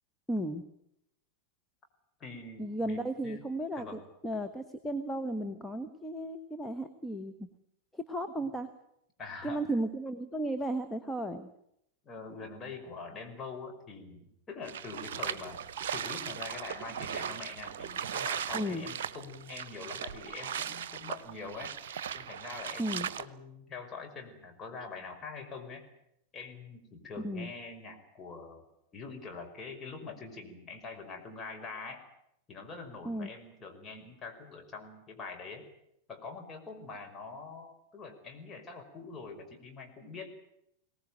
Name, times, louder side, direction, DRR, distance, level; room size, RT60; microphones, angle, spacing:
voice 1, 0.3-0.6 2.6-7.5 7.9-8.7 9.4-11.5 18.5-18.9 22.8-23.1 27.2-27.5 33.0-33.3, right 1 dB, 5° left, 5 dB, 1.5 m, -34 dB
voice 2, 2.2-3.0 3.2-3.4 3.8-4.0 8.4-8.5 9.2-9.6 12.0-15.6 15.9-21.7 22.1-25.9 26.3-28.6 28.9-32.0 32.5-35.6 36.1-40.3, left 4 dB, 20° left, 3 dB, 5.6 m, -44 dB
sound 1, 14.7-23.3, right 8 dB, 55° right, 1.1 m, -38 dB
23.5 x 18.5 x 9.1 m, 0.77 s
figure-of-eight pair, 90°, 0 cm